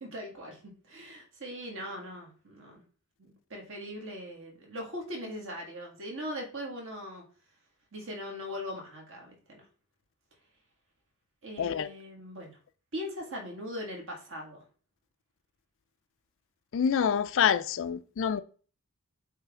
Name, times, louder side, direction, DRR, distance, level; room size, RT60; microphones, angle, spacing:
voice 1, 0.0-2.8 3.2-7.2 7.9-9.6 11.4-12.6 12.9-14.6, equal, 60° right, 2.0 m, -40 dB
voice 2, 16.7-18.4, left 7 dB, 60° left, 0.4 m, -26 dB
8.1 x 3.2 x 3.7 m
head